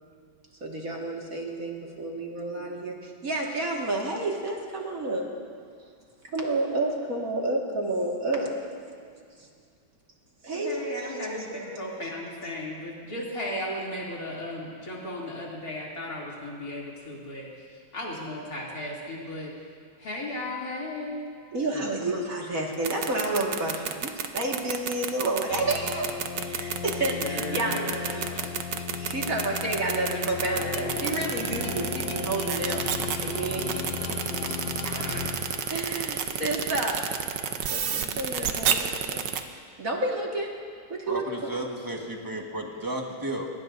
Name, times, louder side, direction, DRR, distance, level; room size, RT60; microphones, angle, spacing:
voice 1, 0.6-5.3 6.2-9.1 9.4-9.5 10.4-10.7 11.1-11.8 21.5-26.1 26.5-28.5 29.0-32.9 33.2-33.7 34.1-34.2 34.8-35.4 35.7-37.1 37.7-39.2 39.8-40.5 40.9-41.5, right 2 dB, 45° right, -2 dB, 2.2 m, -30 dB
voice 2, 10.5-19.5 20.0-21.2 27.2-28.5, left 1 dB, 45° left, -4 dB, 3.4 m, -35 dB
sound 1, 22.7-39.4, right 8 dB, 65° right, 1.4 m, -29 dB
sound 2, 25.5-36.2, left 6 dB, 65° left, 1.4 m, -35 dB
voice 3, 41.1-43.5, right 1 dB, 10° right, 1 dB, 1.2 m, -33 dB
23.5 x 20.5 x 2.7 m, 2.2 s
omnidirectional pair, 2.2 m